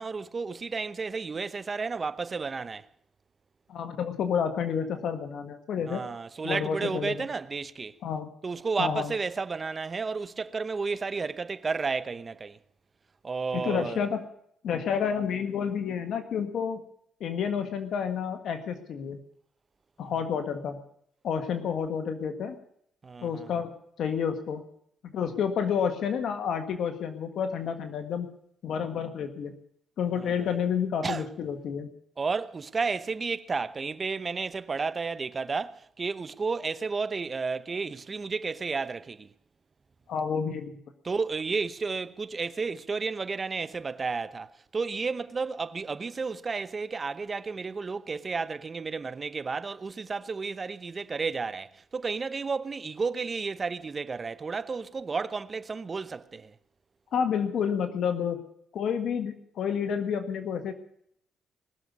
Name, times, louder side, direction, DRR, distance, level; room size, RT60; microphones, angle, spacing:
voice 1, 0.0-2.9 5.9-8.0 8.4-12.6 13.2-14.1 20.0-20.1 23.0-23.5 30.2-30.5 31.0-31.2 32.2-39.3 41.0-56.5, right 4 dB, 35° right, 0.8 m, -32 dB
voice 2, 3.7-6.0 6.4-7.3 8.0-8.3 8.8-9.1 13.5-14.2 14.6-16.8 17.2-19.2 20.0-20.8 21.2-22.6 23.2-23.7 24.0-24.6 25.0-28.3 28.6-29.5 30.0-31.9 40.1-40.7 57.1-58.4 58.7-60.7, left 7 dB, 70° left, 1.6 m, -30 dB
20.0 x 7.1 x 9.5 m
cardioid pair, 90°, 0 cm